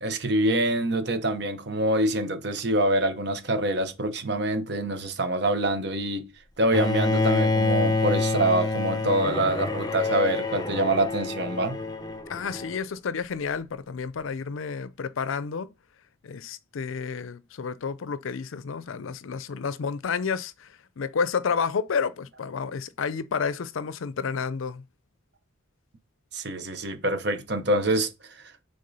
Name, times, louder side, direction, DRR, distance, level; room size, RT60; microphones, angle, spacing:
voice 1, 0.0-6.3 6.6-11.8 26.3-28.1, right 1 dB, 55° right, 1.0 m, -25 dB
Bowed string instrument, 6.7-12.8, left 3 dB, 20° left, 0.6 m, -27 dB
voice 2, 12.3-15.7 16.2-24.8, left 5 dB, 85° left, 0.5 m, -30 dB
6.5 x 3.6 x 4.1 m
head